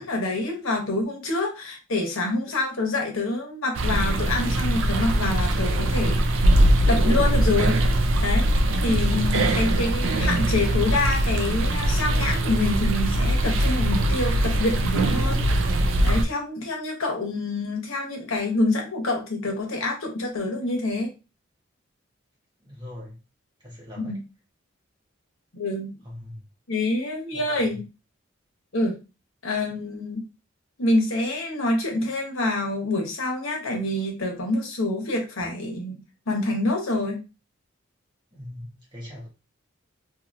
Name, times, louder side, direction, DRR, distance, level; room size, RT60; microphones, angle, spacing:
voice 1, 0.0-6.2 6.9-7.8 8.2-8.4 8.8-15.4 16.0-21.1 24.0-24.2 25.5-25.9 26.7-27.8 28.7-29.0 29.4-30.2 30.8-37.2, left 2 dB, 85° left, 1.1 m, -26 dB
sound 1, 3.7-16.2, right 1 dB, 70° right, 0.4 m, -22 dB
voice 2, 22.6-23.2 23.6-24.2 26.0-26.4 27.3-27.8 38.3-39.3, left 1 dB, 20° right, 1.1 m, -41 dB
2.8 x 2.8 x 2.5 m
head